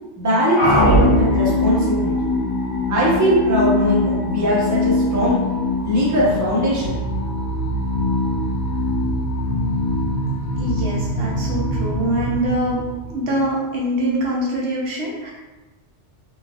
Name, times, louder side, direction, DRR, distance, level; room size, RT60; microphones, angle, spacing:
voice 1, 0.2-2.1 2.9-5.5 5.8-7.0, equal, 20° right, -6 dB, 0.5 m, -20 dB
sound 1, 0.6-13.4, left 1 dB, 80° left, 1.4 m, -22 dB
voice 2, 10.6-12.8 13.1-15.3, right 1 dB, 65° right, -4 dB, 0.8 m, -24 dB
3.1 x 2.4 x 2.2 m, 1.1 s
omnidirectional pair, 1.2 m